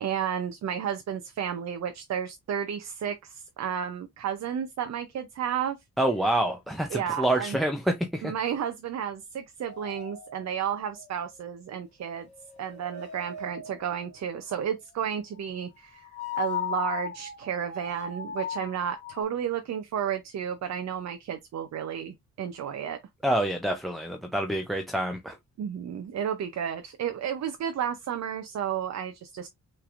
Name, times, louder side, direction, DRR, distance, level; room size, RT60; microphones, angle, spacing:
voice 1, 0.0-5.8 6.9-7.6 8.2-12.3 12.6-16.1 16.4-23.0 25.6-29.5, right 8 dB, 60° right, 0.7 m, -32 dB
voice 2, 6.0-8.3 23.2-25.4, right 1 dB, ahead, 0.6 m, -27 dB
sound 1, 9.7-11.6 12.1-14.1 16.0-19.2, left 7 dB, 20° left, 2.8 m, -38 dB
5.9 x 3.3 x 2.5 m
wide cardioid pair, 150°, 30 cm